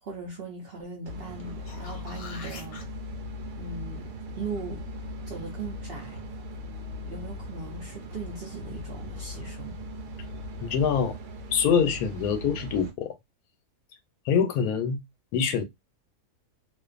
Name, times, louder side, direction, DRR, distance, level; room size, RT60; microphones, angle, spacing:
voice 1, 0.0-2.8 3.6-4.9 5.3-6.2 7.1-9.8, right 4 dB, 55° right, 0.7 m, -39 dB
sound 1, 1.0-12.9, left 1 dB, 85° right, 1.2 m, -39 dB
sound 2, 1.4-2.8 7.6-7.7, left 4 dB, 60° left, 0.9 m, -44 dB
voice 2, 10.6-11.2 11.5-13.1 14.3-15.0 15.3-15.6, left 6 dB, 80° left, 1.1 m, -24 dB
2.5 x 2.4 x 2.3 m
omnidirectional pair, 1.6 m